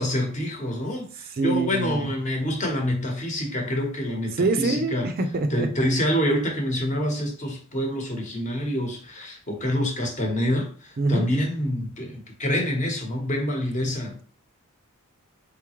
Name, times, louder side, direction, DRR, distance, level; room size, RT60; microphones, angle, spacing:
voice 1, 0.0-5.1 5.5-14.2, equal, 35° left, 1 dB, 1.1 m, -26 dB
voice 2, 1.4-2.1 4.4-5.7 11.0-11.3, right 2 dB, 45° right, 7 dB, 0.5 m, -24 dB
3.9 x 3.6 x 3.0 m, 0.42 s
head